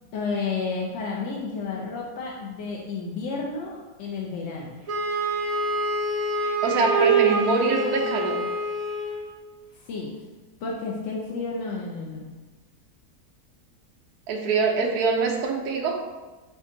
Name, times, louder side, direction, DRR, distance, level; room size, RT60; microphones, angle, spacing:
voice 1, 0.1-4.8 9.9-10.1 10.6-12.3, left 4 dB, 65° left, -3 dB, 0.7 m, -31 dB
Wind instrument woodwind instrument, 4.9-9.3, right 3 dB, 40° right, 0.5 m, -25 dB
voice 2, 6.6-8.4 14.3-16.0, right 4 dB, 85° right, 1 dB, 1.1 m, -24 dB
5.0 x 2.5 x 3.8 m, 1.2 s
omnidirectional pair, 1.6 m